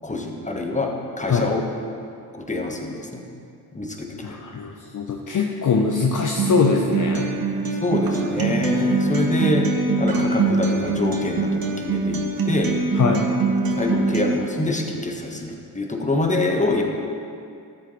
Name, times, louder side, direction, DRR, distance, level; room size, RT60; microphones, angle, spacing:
voice 1, 0.0-0.9 1.2-1.6 2.3-3.2 3.8-4.1 7.8-9.6 10.0-12.2 12.5-12.7 13.8-16.8, left 2 dB, 15° left, 2 dB, 1.6 m, -25 dB
voice 2, 4.2-7.3 12.9-13.3, left 5 dB, 40° left, 1 dB, 1.0 m, -22 dB
Acoustic guitar, 6.4-14.4, right 3 dB, 45° right, 1.5 m, -23 dB
13.0 x 7.5 x 4.1 m, 2.4 s
hypercardioid pair, 40°, 47 cm